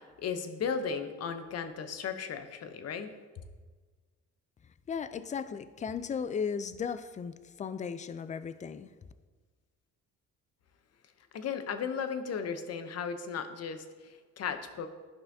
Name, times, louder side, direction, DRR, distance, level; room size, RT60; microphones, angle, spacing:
voice 1, 0.2-3.1 11.3-14.9, left 6 dB, 55° left, 9 dB, 0.8 m, -35 dB
voice 2, 4.9-8.9, left 6 dB, 25° left, 13 dB, 0.4 m, -36 dB
11.5 x 5.5 x 2.7 m, 1.4 s
cardioid pair, 90°, 30 cm